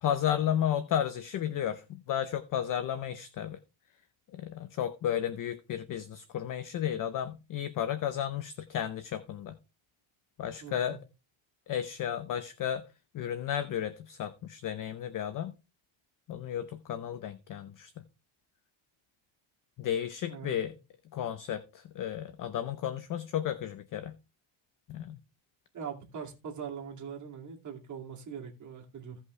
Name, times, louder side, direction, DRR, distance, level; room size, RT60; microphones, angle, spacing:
voice 1, 0.0-3.6 4.3-9.6 10.4-11.0 11.7-12.8 13.1-15.5 16.3-18.0 19.8-20.7 21.1-24.1 24.9-25.2, left 10 dB, 40° left, 0.6 m, -33 dB
voice 2, 10.6-11.0 20.3-20.6 25.7-29.2, right 7 dB, 35° right, 2.4 m, -42 dB
16.0 x 5.5 x 3.2 m
cardioid pair, 160°, 50 cm